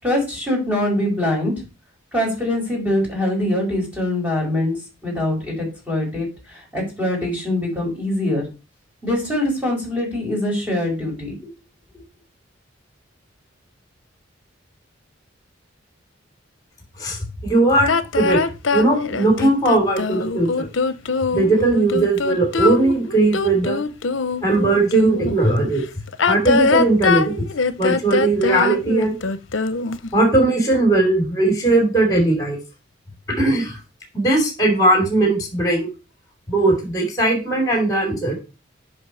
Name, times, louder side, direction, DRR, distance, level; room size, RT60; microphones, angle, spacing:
voice 1, 0.0-1.5 2.1-4.8 5.0-8.4 9.0-11.5, left 1 dB, 10° right, -3 dB, 5.4 m, -23 dB
voice 2, 17.0-18.4 18.7-20.7 21.3-23.8 24.4-25.8 26.3-27.4 27.8-29.1 30.1-32.6 33.4-33.8 34.1-35.9 36.5-38.4, right 2 dB, 20° left, 2 dB, 3.1 m, -18 dB
sound 1, 17.9-25.4 26.1-30.1, left 4 dB, 70° left, 0.7 m, -22 dB
8.1 x 5.5 x 5.6 m, 0.30 s
head